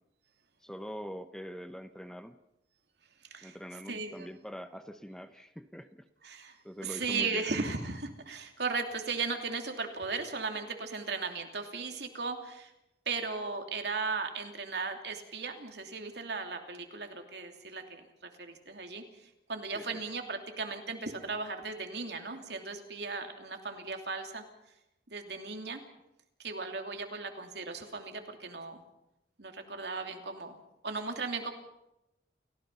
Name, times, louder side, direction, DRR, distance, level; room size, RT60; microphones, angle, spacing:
voice 1, 0.6-2.4 3.4-6.1 6.6-7.5 19.7-20.0, equal, 5° left, 10 dB, 0.7 m, -43 dB
voice 2, 3.9-4.3 6.2-12.7 13.1-24.4 25.1-25.8 26.4-28.8 29.4-30.6 30.8-31.5, right 4 dB, 70° right, 4 dB, 2.9 m, -37 dB
30.0 x 16.5 x 5.6 m, 0.86 s
head